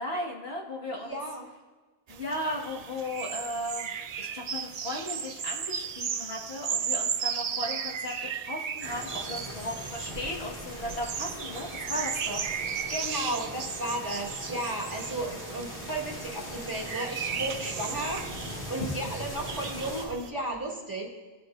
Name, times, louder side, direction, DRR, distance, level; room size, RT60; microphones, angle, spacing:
voice 1, 0.0-1.2 2.1-12.5, left 1 dB, 80° left, -2 dB, 2.1 m, -36 dB
voice 2, 1.0-1.5 12.9-21.1, right 1 dB, 20° right, -4 dB, 2.3 m, -34 dB
sound 1, 2.1-20.3, right 7 dB, 55° right, 0.5 m, -36 dB
sound 2, 8.8-20.0, equal, 60° left, 2.2 m, -40 dB
18.5 x 7.9 x 2.6 m, 1.3 s
omnidirectional pair, 1.0 m